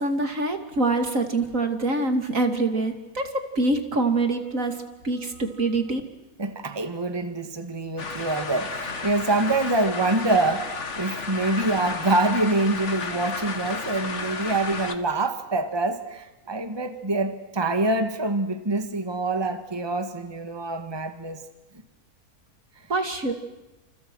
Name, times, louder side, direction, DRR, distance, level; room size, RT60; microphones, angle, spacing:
voice 1, 0.0-6.0 22.9-23.3, right 2 dB, 60° right, 6 dB, 3.1 m, -25 dB
voice 2, 6.4-21.4, right 2 dB, 15° right, 8 dB, 1.8 m, -25 dB
sound 1, 8.0-15.0, left 4 dB, 50° left, 2.1 m, -33 dB
29.5 x 28.5 x 6.4 m, 1.0 s
omnidirectional pair, 1.6 m